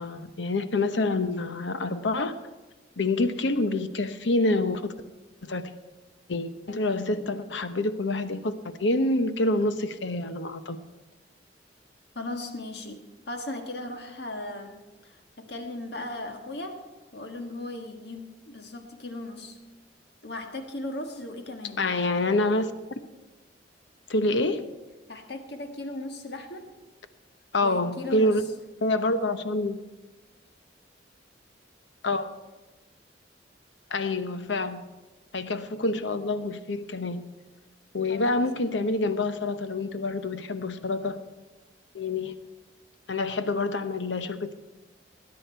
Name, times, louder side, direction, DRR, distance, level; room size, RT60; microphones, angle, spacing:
voice 1, 0.0-2.3 3.0-4.9 5.4-5.7 6.3-10.8 21.8-22.7 24.1-24.7 27.5-28.4 28.8-29.8 32.0-32.3 33.9-34.8 35.3-37.2 37.9-41.2 41.9-42.4 43.1-44.5, left 2 dB, 80° left, 10 dB, 0.9 m, -27 dB
voice 2, 12.1-16.8 17.1-19.6 20.2-21.9 25.1-26.7 27.6-28.4 38.1-38.4, left 2 dB, 60° left, 4 dB, 1.6 m, -37 dB
20.0 x 9.8 x 4.5 m, 1.2 s
head